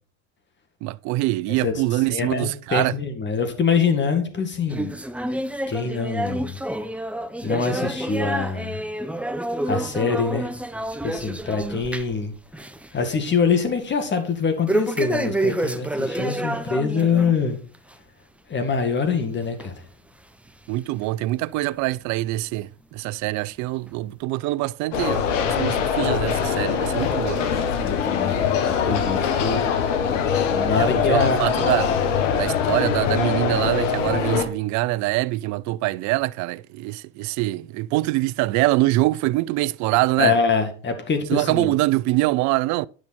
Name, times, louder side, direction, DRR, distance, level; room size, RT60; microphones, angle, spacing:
voice 1, 0.8-3.0 20.7-27.6 30.8-31.9 32.4-40.4 41.3-42.9, right 18 dB, 50° right, 0.4 m, -24 dB
voice 2, 2.1-4.9 5.7-6.6 7.4-8.8 9.6-10.5 11.0-12.3 12.9-17.6 18.5-19.7 27.8-29.7 30.5-31.4 40.2-41.7, left 5 dB, 30° left, 1.9 m, -24 dB
sound 1, 4.7-12.2 12.5-12.9 13.2-13.3 14.7-17.3 17.7-17.9 18.6-18.7 19.6-19.7 20.5-20.6, right 1 dB, 5° right, 0.7 m, -28 dB
sound 2, 24.9-34.4, left 7 dB, 80° left, 1.4 m, -23 dB
9.8 x 6.4 x 4.2 m
hypercardioid pair, 90°, 37 cm